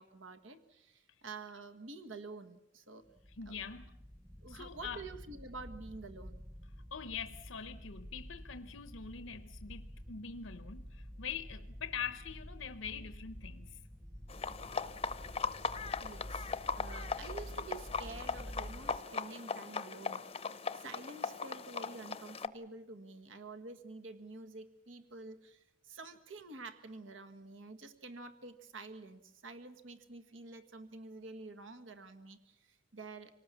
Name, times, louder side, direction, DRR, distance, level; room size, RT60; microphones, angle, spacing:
voice 1, 0.0-3.1 3.5-3.6 4.4-6.4 16.0-33.3, right 3 dB, 75° right, 1.6 m, -49 dB
sound 1, 3.1-19.0, equal, 5° right, 1.0 m, -49 dB
voice 2, 3.3-4.0 4.5-5.0 6.9-13.8, left 6 dB, 85° left, 0.8 m, -43 dB
sound 2, 14.3-22.5, left 5 dB, 30° left, 0.7 m, -39 dB
26.0 x 18.5 x 7.1 m
head